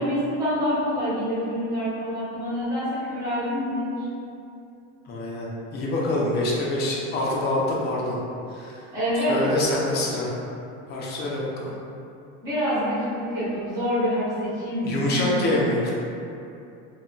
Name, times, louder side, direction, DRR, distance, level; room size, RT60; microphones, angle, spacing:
voice 1, 0.0-4.1 8.9-9.4 12.4-15.5, equal, 10° right, -12 dB, 0.6 m, -26 dB
voice 2, 5.1-8.2 8.5-8.8 9.2-10.3 10.9-11.8 14.8-15.9, left 1 dB, 30° left, -4 dB, 0.4 m, -26 dB
2.2 x 2.1 x 3.7 m, 2.7 s
cardioid pair, 165°, 34 cm